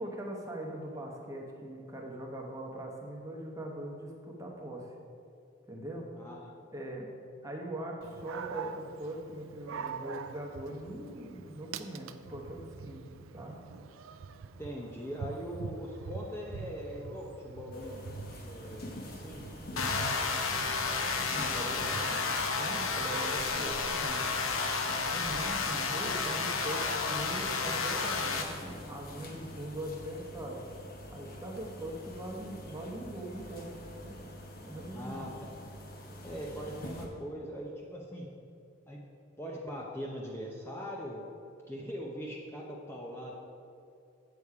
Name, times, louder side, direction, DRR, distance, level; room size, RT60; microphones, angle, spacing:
voice 1, 0.0-4.9 5.7-6.1 6.7-7.1 7.4-13.6 20.0-20.5 21.1-30.6 31.1-34.3 34.6-35.3 36.7-36.8, right 1 dB, 15° right, -1 dB, 0.9 m, -41 dB
voice 2, 6.2-6.8 14.6-18.0 18.5-19.4 34.9-35.6 36.2-38.3 38.9-39.0 39.4-41.2 41.7-43.3, equal, 10° left, -3 dB, 0.6 m, -41 dB
Dog, 8.0-27.6, right 5 dB, 80° right, 0.4 m, -46 dB
sound 1, 17.7-37.1, equal, 45° left, 0.9 m, -46 dB
sound 2, 19.8-28.4, left 4 dB, 80° left, 0.8 m, -31 dB
8.1 x 7.0 x 4.8 m, 2.5 s
head